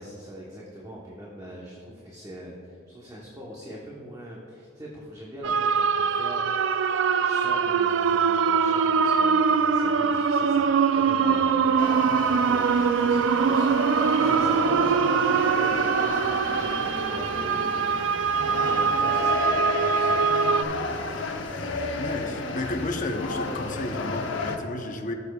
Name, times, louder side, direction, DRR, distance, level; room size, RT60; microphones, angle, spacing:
voice 1, 0.0-6.4 7.2-21.6, right 1 dB, 20° right, -5 dB, 1.0 m, -42 dB
sound 1, 5.4-20.6, right 6 dB, 80° right, 0.3 m, -23 dB
sound 2, 11.8-24.6, left 3 dB, 80° left, 0.8 m, -32 dB
voice 2, 22.0-25.1, left 2 dB, 45° left, 3 dB, 0.7 m, -32 dB
14.0 x 6.8 x 2.3 m, 2.4 s
head